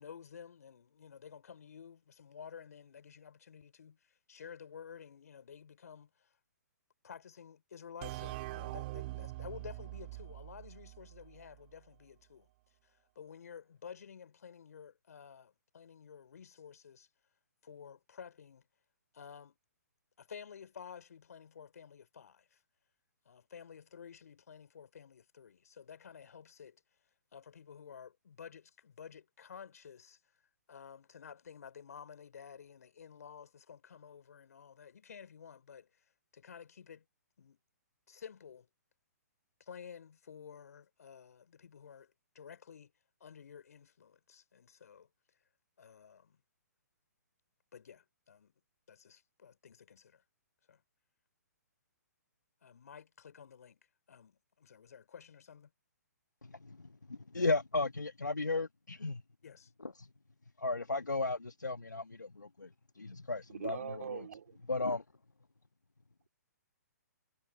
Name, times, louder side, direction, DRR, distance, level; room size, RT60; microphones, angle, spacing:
voice 1, 0.0-6.4 7.0-12.5 12.8-17.1 17.6-18.7 19.1-19.6 20.2-22.6 23.3-26.8 27.3-30.2 30.7-37.1 37.4-37.6 38.1-38.7 39.6-42.9 43.2-45.1 45.8-46.4 47.7-48.5 48.9-50.2 50.7-50.8 52.6-55.7 59.4-59.6, left 7 dB, 60° left, 4.0 m, -52 dB
sound 1, 8.0-11.6, right 20 dB, 35° right, 2.3 m, -43 dB
voice 2, 56.4-59.2 59.8-60.1 60.6-64.3 64.7-65.0, left 3 dB, 90° left, 1.3 m, -35 dB
voice 3, 63.5-64.6, right 7 dB, 60° right, 3.6 m, -42 dB
figure-of-eight pair, 130°, 9 cm